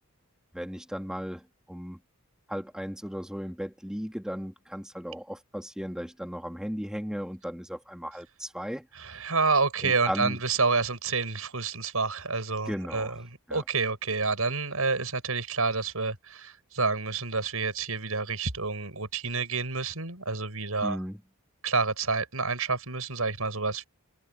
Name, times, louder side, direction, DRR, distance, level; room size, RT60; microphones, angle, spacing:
voice 1, 0.5-2.0 2.5-8.8 9.1-9.2 9.8-10.4 12.7-13.2 13.5-13.6 20.8-21.2, equal, 5° right, 3.0 m, -36 dB
voice 2, 8.9-13.1 13.5-21.0 21.6-23.9, right 4 dB, 75° right, 6.2 m, -28 dB
head